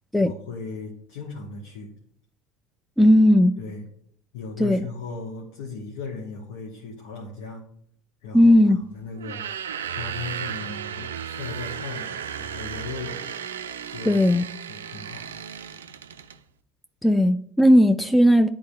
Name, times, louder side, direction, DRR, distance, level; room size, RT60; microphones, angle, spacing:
voice 1, 0.2-1.9 3.6-3.9 4.3-7.6 8.2-9.4 9.8-13.2 13.9-14.2 14.7-15.4, left 4 dB, 70° left, 1.1 m, -37 dB
voice 2, 3.0-3.5 4.6-4.9 8.3-8.8 14.1-14.4 17.0-18.5, equal, 5° left, 0.4 m, -16 dB
sound 1, 9.2-16.4, right 8 dB, 80° right, 0.3 m, -34 dB
11.0 x 3.8 x 2.3 m
figure-of-eight pair, 65°, 0 cm